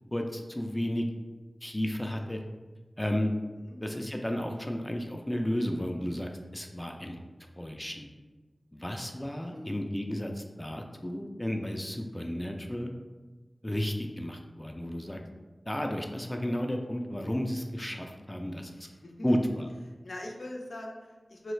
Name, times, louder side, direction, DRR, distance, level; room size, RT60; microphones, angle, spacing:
voice 1, 0.1-1.0 1.6-2.4 3.0-3.3 3.8-7.2 7.6-8.1 8.7-12.9 13.6-15.2 15.7-18.7 19.2-19.7, equal, 15° left, 3 dB, 0.3 m, -32 dB
voice 2, 9.5-10.1 18.7-19.5 20.0-21.5, left 1 dB, 75° left, 0 dB, 0.5 m, -42 dB
3.1 x 2.4 x 3.1 m, 1.3 s
wide cardioid pair, 65°, 0 cm